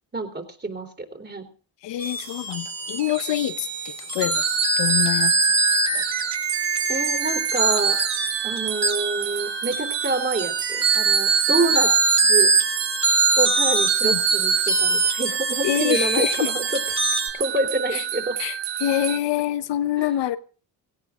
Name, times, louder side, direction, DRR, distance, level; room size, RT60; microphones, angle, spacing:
voice 1, 0.1-1.4 6.9-8.0 8.4-12.0 12.3-12.5 13.4-16.7 17.4-18.4 20.0-20.1, right 2 dB, 25° right, 3.7 m, -27 dB
voice 2, 1.8-4.4 4.8-5.5 5.9-6.0 14.0-14.2 15.6-16.5 17.9-18.0 18.4-20.4, left 13 dB, 85° left, 1.1 m, -26 dB
sound 1, 2.0-17.3, right 4 dB, 40° right, 4.3 m, -23 dB
sound 2, 4.3-19.2, right 11 dB, 85° right, 1.2 m, -30 dB
17.5 x 17.0 x 3.8 m
cardioid pair, 80°, 42 cm